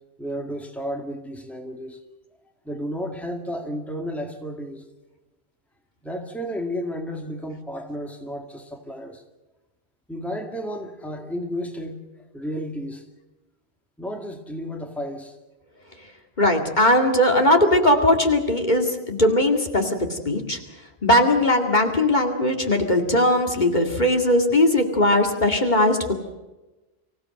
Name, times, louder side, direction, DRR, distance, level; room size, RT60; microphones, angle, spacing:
voice 1, 0.2-2.0 2.6-4.8 6.0-9.2 10.1-13.1 14.0-15.4, equal, ahead, 2.1 m, -32 dB
voice 2, 16.4-20.6 21.0-26.2, left 1 dB, 45° left, 2.4 m, -19 dB
25.0 x 16.0 x 7.8 m
omnidirectional pair, 1.1 m